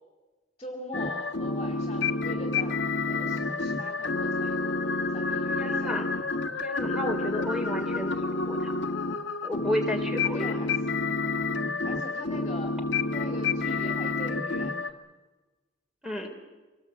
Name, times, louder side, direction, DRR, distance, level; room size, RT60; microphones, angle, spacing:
voice 1, 0.6-2.8 3.1-4.7 5.1-6.0 10.3-10.9 11.8-12.8 13.1-14.9, left 1 dB, 25° left, 3 dB, 2.9 m, -41 dB
sound 1, 0.9-14.9, left 3 dB, 70° left, 1.7 m, -29 dB
voice 2, 5.5-6.1 6.6-8.7 9.4-10.6 16.0-16.3, left 1 dB, 5° right, 3 dB, 3.3 m, -32 dB
25.0 x 19.5 x 8.2 m, 1.2 s
head